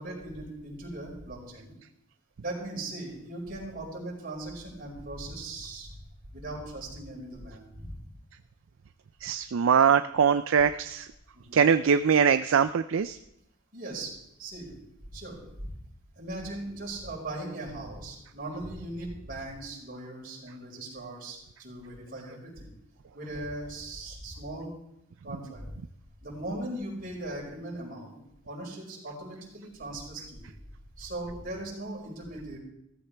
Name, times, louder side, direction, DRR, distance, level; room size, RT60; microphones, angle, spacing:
voice 1, 0.0-1.7 2.4-5.9 6.2-8.1 11.3-11.6 13.7-15.7 16.2-22.7 23.1-24.7 25.2-25.7 26.2-28.2 28.4-30.5 31.0-32.6, right 1 dB, 45° right, -3 dB, 5.3 m, -39 dB
voice 2, 9.2-11.1 11.5-13.2, right 7 dB, 65° right, 11 dB, 0.4 m, -22 dB
16.5 x 14.5 x 3.4 m, 0.79 s
head